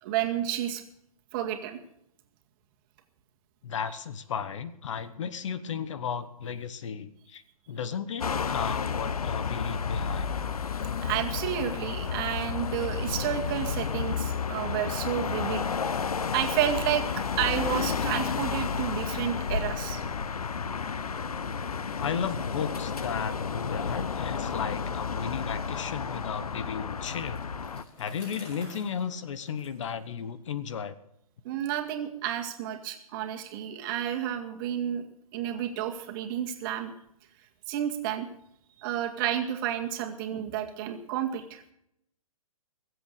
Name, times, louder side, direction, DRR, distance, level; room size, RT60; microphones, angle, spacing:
voice 1, 0.0-0.8 1.3-1.8 11.0-15.7 16.3-20.0 31.4-35.0 35.3-36.9 37.7-38.3 38.8-41.6, right 10 dB, 35° right, 4 dB, 2.0 m, -31 dB
voice 2, 3.6-10.3 22.0-27.4 28.0-31.0, left 7 dB, 55° left, 14 dB, 1.1 m, -34 dB
sound 1, 8.2-27.8, left 6 dB, 75° left, 0.9 m, -31 dB
Bicycle, 26.9-30.7, left 1 dB, 30° left, 6.5 m, -51 dB
22.0 x 8.0 x 6.8 m, 0.76 s
figure-of-eight pair, 125°, 19 cm